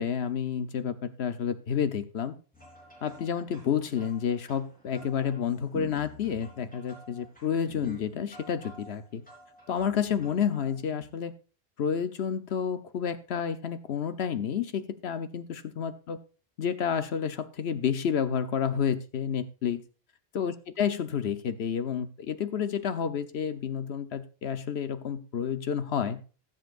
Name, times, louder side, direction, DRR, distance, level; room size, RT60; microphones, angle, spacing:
voice 1, 0.0-2.4 3.0-9.2 9.7-11.3 11.8-16.2 16.6-19.8 20.3-26.2, left 8 dB, 80° left, 10 dB, 1.1 m, -30 dB
sound 1, 2.5-11.1, equal, 10° left, 3.9 m, -49 dB
19.5 x 7.6 x 2.5 m, 0.36 s
omnidirectional pair, 1.1 m